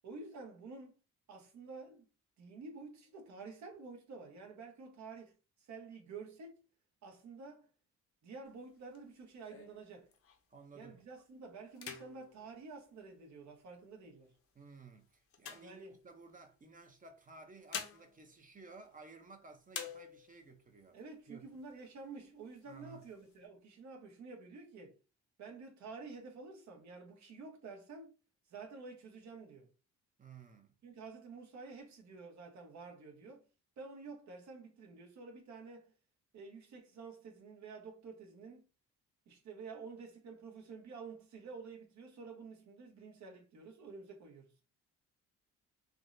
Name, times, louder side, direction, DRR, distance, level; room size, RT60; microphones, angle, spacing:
voice 1, 0.0-0.9 1.3-2.1 2.4-6.6 7.0-7.7 8.2-10.1 10.7-14.3 15.6-16.0 20.9-24.9 25.4-28.1 28.5-29.7 30.8-33.5 33.8-35.9 36.3-38.7 39.3-44.6, right 4 dB, 65° right, 1.0 m, -50 dB
sound 1, 8.5-10.6 11.1-11.3 11.7-13.6 14.3-16.4 17.3-19.3 19.7-20.5 21.0-21.1 21.4-22.0 22.5-23.4, left 6 dB, 50° left, 0.6 m, -49 dB
voice 2, 10.5-11.0 14.6-21.0 21.3-21.5 22.7-23.1 30.2-30.7, right 4 dB, 25° right, 0.6 m, -55 dB
3.5 x 2.0 x 2.5 m
cardioid pair, 90°, 30 cm